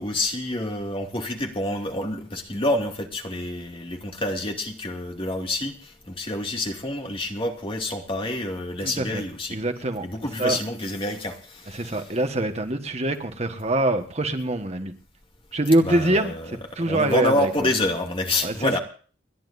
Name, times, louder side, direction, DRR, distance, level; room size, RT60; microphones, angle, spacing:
voice 1, 0.0-9.6 10.0-12.0 15.8-16.5 16.8-18.8, left 1 dB, 30° left, 2.5 m, -28 dB
voice 2, 8.8-9.2 9.5-10.1 10.4-10.6 11.7-14.9 15.5-17.5 18.4-18.8, right 1 dB, 35° right, 1.4 m, -24 dB
30.0 x 11.5 x 2.6 m
head